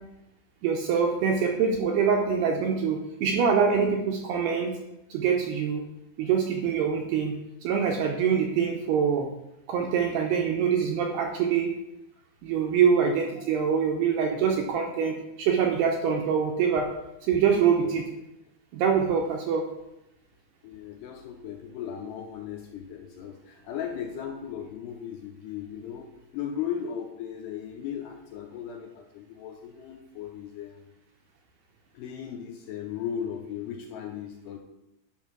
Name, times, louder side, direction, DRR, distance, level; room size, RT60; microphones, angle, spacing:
voice 1, 0.6-4.7 5.1-5.8 6.2-7.3 7.6-9.3 9.7-11.7 12.4-16.9 17.3-18.0 18.7-19.6, right 6 dB, 80° right, 1 dB, 2.5 m, -24 dB
voice 2, 20.6-26.1 26.3-30.9 31.9-34.6, left 8 dB, 80° left, 2 dB, 2.6 m, -37 dB
10.5 x 5.6 x 6.0 m, 0.90 s
omnidirectional pair, 5.6 m